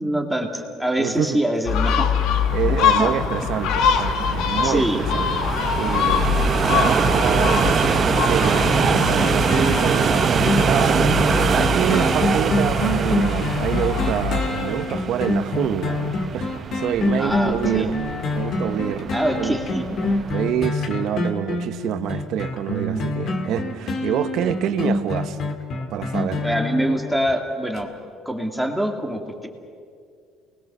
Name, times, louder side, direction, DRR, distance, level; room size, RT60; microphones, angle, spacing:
voice 1, 0.0-2.1 2.6-3.1 4.6-5.0 17.2-17.9 19.1-19.8 26.4-27.9 28.3-29.5, right 1 dB, ahead, 2 dB, 2.3 m, -24 dB
voice 2, 1.0-1.4 2.5-5.3 5.7-6.4 6.7-7.9 8.2-16.5 16.7-18.0 18.3-19.1 19.4-19.6 20.3-25.4 25.9-26.4, right 10 dB, 65° right, 11 dB, 1.2 m, -27 dB
Gull seagull, 1.7-14.5, left 6 dB, 75° left, 1.8 m, -24 dB
sound 1, 2.3-20.6, right 6 dB, 35° right, 0.8 m, -24 dB
sound 2, 8.6-27.3 27.8-27.9, left 2 dB, 50° left, 2.2 m, -26 dB
29.0 x 20.5 x 6.9 m, 2.2 s
cardioid pair, 140°, 0 cm